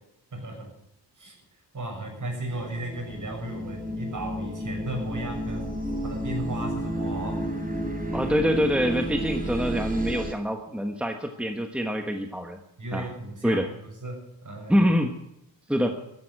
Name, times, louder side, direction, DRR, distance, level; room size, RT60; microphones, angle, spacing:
voice 1, 0.3-0.7 1.2-1.3 1.7-5.6 6.0-7.4 12.8-14.8, right 1 dB, 45° right, 1 dB, 6.7 m, -35 dB
sound 1, 2.5-10.3, equal, 20° right, 3.3 m, -32 dB
voice 2, 8.1-12.6 12.9-13.1 13.4-13.7 14.7-15.2 15.7-16.0, equal, 5° right, 5 dB, 1.3 m, -25 dB
14.0 x 11.5 x 7.7 m, 0.82 s
wide cardioid pair, 115°, 41 cm